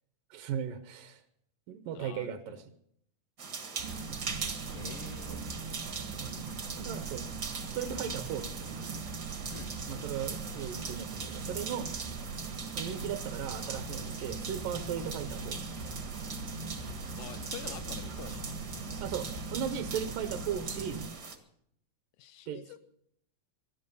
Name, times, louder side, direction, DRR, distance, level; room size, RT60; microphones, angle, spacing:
voice 1, 0.3-1.2 1.7-2.6 4.1-4.2 5.3-5.5 6.1-7.3 7.7-8.9 9.9-11.9 12.7-15.9 19.0-21.1 22.5-22.8, right 9 dB, 70° right, 8 dB, 2.2 m, -37 dB
voice 2, 1.9-2.6 4.7-5.7 9.5-9.7 17.2-18.6 22.2-22.8, left 12 dB, 80° left, 10 dB, 2.0 m, -47 dB
sound 1, 3.4-21.4, right 5 dB, 55° right, 1.1 m, -41 dB
sound 2, 3.8-21.1, right 4 dB, 90° right, 3.2 m, -41 dB
sound 3, 12.8-20.7, left 4 dB, 60° left, 1.4 m, -48 dB
20.0 x 12.0 x 5.4 m, 0.71 s
omnidirectional pair, 4.5 m